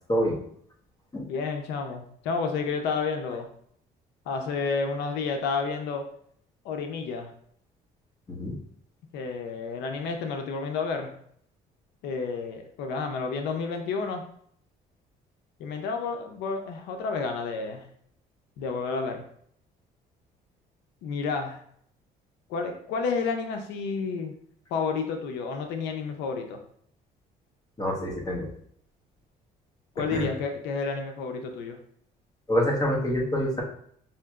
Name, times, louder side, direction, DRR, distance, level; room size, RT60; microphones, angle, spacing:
voice 1, 1.2-3.5 4.3-6.0 6.6-7.3 9.1-11.1 12.0-14.2 15.6-17.9 18.6-19.2 21.0-21.6 22.5-24.3 24.7-26.6 30.0-31.8, left 4 dB, 90° left, 5 dB, 0.5 m, -30 dB
voice 2, 27.8-28.5 30.1-30.3 32.5-33.6, equal, 20° left, -1 dB, 1.1 m, -26 dB
5.6 x 2.8 x 2.3 m, 0.64 s
cardioid pair, 110°, 17 cm